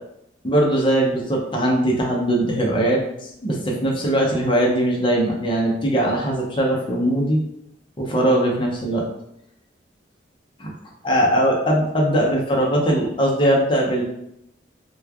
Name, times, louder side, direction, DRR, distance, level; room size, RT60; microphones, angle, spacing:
voice 1, 0.4-7.4 8.0-9.0 10.6-10.7 11.0-14.0, right 1 dB, 25° left, -2 dB, 0.7 m, -20 dB
3.1 x 2.3 x 3.4 m, 0.79 s
head